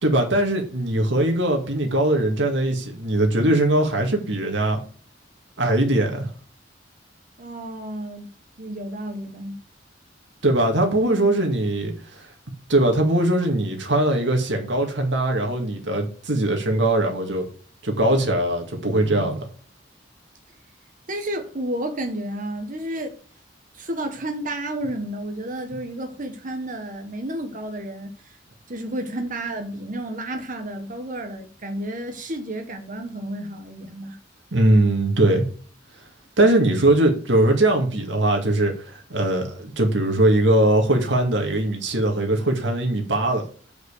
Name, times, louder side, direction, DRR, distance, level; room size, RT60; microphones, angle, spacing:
voice 1, 0.0-4.8 5.6-6.3 10.4-12.3 12.7-17.5 17.8-19.5 34.5-35.5 36.4-43.4, right 1 dB, 75° right, 2.2 m, -21 dB
voice 2, 7.4-8.3 8.6-9.6 21.1-23.2 23.7-28.4 28.7-34.2, right 1 dB, 45° right, 1.2 m, -31 dB
8.0 x 5.3 x 6.6 m
head